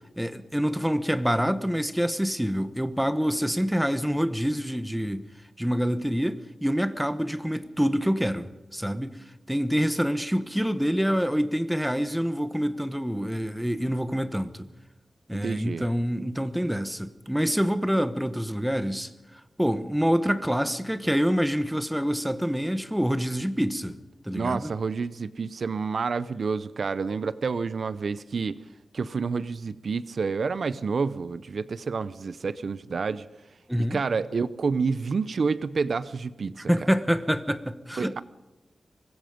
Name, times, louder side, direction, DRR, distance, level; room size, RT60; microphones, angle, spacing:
voice 1, 0.2-5.3 5.6-9.2 9.5-14.7 15.3-19.1 19.6-24.0 24.2-24.7 33.7-34.0 36.5-38.2, equal, 5° right, 1.1 m, -26 dB
voice 2, 15.4-15.9 24.3-28.6 28.9-33.3 33.8-36.7 38.0-38.2, right 5 dB, 55° right, 0.7 m, -29 dB
24.5 x 20.5 x 5.2 m
wide cardioid pair, 155°, 0 cm